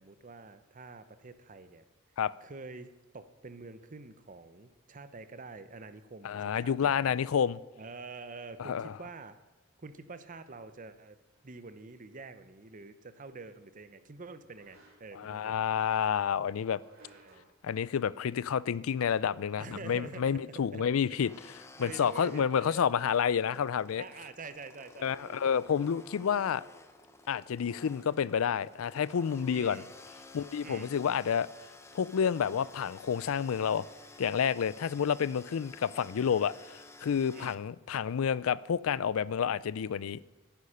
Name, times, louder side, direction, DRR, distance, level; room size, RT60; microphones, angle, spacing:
voice 1, 0.0-1.8 2.4-7.2 7.8-9.4 9.8-11.2 11.4-15.7 17.0-17.5 19.6-20.4 20.7-20.9 21.8-22.9 24.0-25.4 29.5-29.9 30.6-30.9 37.3-37.6, right 3 dB, 40° right, 0.7 m, -47 dB
voice 2, 6.2-7.6 8.6-8.9 15.1-16.8 17.6-21.3 21.8-24.0 25.0-26.6 27.3-29.8 30.3-31.5 31.9-33.9 34.2-40.2, left 7 dB, 85° left, 0.4 m, -29 dB
sound 1, 11.3-11.5 14.5-15.3 16.7-17.6, right 1 dB, 75° right, 3.4 m, -61 dB
sound 2, 21.2-37.5, left 2 dB, 15° left, 0.7 m, -53 dB
10.5 x 9.9 x 5.6 m
head